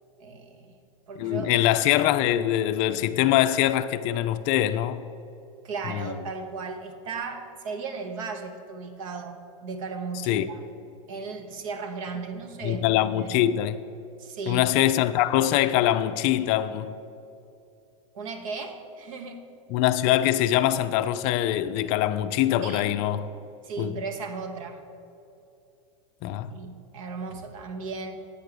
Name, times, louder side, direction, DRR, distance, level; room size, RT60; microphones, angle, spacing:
voice 1, 0.2-0.7 1.1-1.5 5.6-10.6 11.1-13.3 14.2-14.7 18.1-19.5 22.6-22.9 23.6-24.8 26.4-28.2, right 4 dB, 70° right, 1.0 m, -36 dB
voice 2, 1.2-5.0 5.9-6.2 10.3-10.5 12.6-13.8 14.5-16.9 19.7-23.3 23.8-23.9 26.2-26.5, left 12 dB, 45° left, 0.4 m, -23 dB
8.5 x 4.7 x 6.6 m
supercardioid pair, 135°, 17 cm